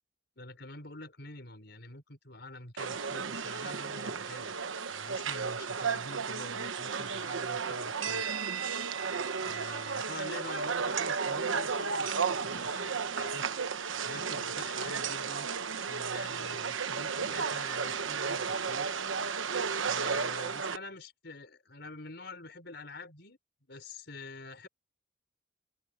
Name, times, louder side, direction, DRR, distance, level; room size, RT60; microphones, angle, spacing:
voice 1, 0.4-4.5 4.9-8.2 9.4-13.5 13.9-15.5 15.8-18.9 19.8-23.4 23.7-24.7, left 2 dB, 55° left, 5.4 m, -46 dB
sound 1, 2.8-20.8, right 5 dB, 80° right, 1.1 m, -33 dB
open air
head